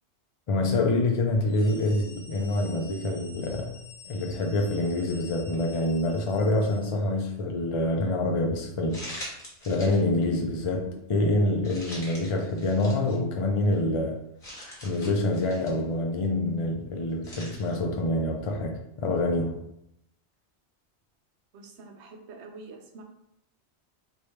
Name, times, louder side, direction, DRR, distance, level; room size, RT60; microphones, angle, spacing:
voice 1, 0.5-3.7 4.0-9.2 9.7-14.2 14.8-19.6, left 2 dB, 60° left, 0 dB, 0.3 m, -26 dB
sound 1, 1.4-7.1, left 4 dB, 75° left, 0.9 m, -49 dB
sound 2, 5.5-5.8 6.4-6.5 8.9-10.0 10.3-10.5 11.6-13.2 13.7-13.8 14.4-15.8 17.2-17.8, left 1 dB, 35° left, 1.1 m, -42 dB
voice 2, 21.5-23.0, right 3 dB, 85° right, 3 dB, 0.9 m, -46 dB
3.2 x 2.6 x 3.1 m, 0.79 s
omnidirectional pair, 1.1 m